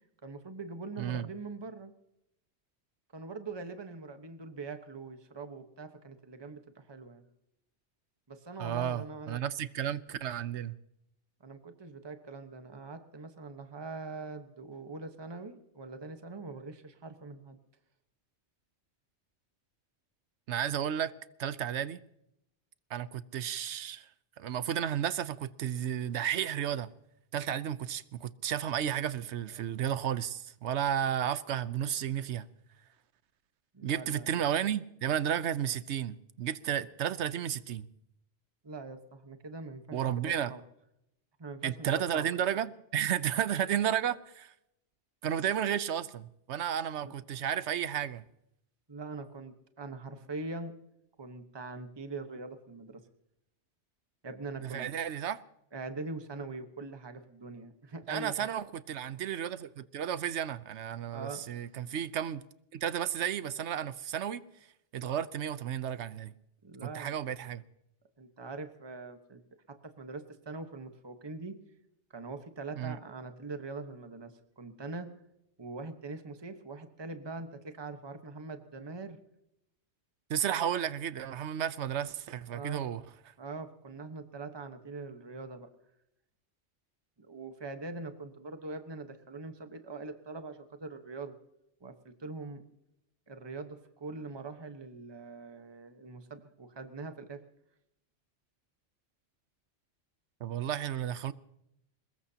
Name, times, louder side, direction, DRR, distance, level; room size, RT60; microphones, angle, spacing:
voice 1, 0.2-1.9 3.1-7.2 8.3-9.4 11.4-17.6 33.7-34.4 38.6-40.6 41.4-42.3 47.0-47.1 48.9-50.7 51.2-53.0 54.2-54.9 55.7-58.5 61.1-61.5 66.6-67.1 68.2-69.4 69.8-71.6 72.1-75.1 75.6-79.2 82.5-82.8 83.4-85.7 87.2-91.4 91.8-92.6 93.3-97.4, right 3 dB, 25° right, 1.2 m, -43 dB
voice 2, 1.0-1.3 8.6-10.8 20.5-21.1 21.4-22.0 22.9-24.1 24.4-26.9 27.3-32.5 33.8-37.9 39.9-40.5 41.6-44.5 45.2-48.2 54.6-55.4 58.1-62.4 62.7-64.4 64.9-66.3 66.8-67.6 72.8-73.0 80.3-83.0 100.4-101.3, right 9 dB, 80° right, 1.0 m, -33 dB
22.5 x 21.0 x 2.8 m
omnidirectional pair, 1.2 m